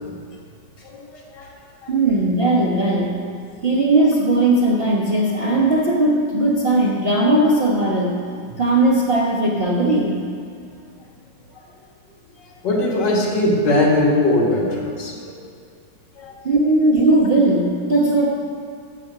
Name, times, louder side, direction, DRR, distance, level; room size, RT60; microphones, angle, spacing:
voice 1, 1.9-3.2 3.6-8.1 8.6-10.3 16.4-18.3, right 2 dB, 40° right, -4 dB, 0.9 m, -18 dB
voice 2, 12.6-15.4 16.2-16.4, left 1 dB, 60° left, -3 dB, 2.2 m, -20 dB
9.5 x 7.0 x 6.4 m, 2.3 s
omnidirectional pair, 2.2 m